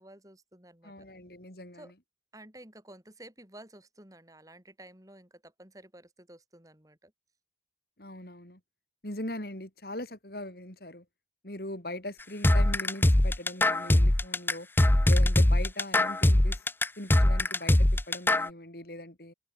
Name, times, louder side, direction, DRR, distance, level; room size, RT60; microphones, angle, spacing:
voice 1, 0.0-0.9 1.7-1.9 2.3-7.1, right 1 dB, 20° right, 4.5 m, -52 dB
voice 2, 0.8-1.9 8.0-8.6 9.0-11.0 11.4-14.7 15.0-16.6 17.0-19.3, left 1 dB, 55° left, 4.6 m, -40 dB
sound 1, 12.4-18.5, left 1 dB, 10° left, 0.5 m, -22 dB
head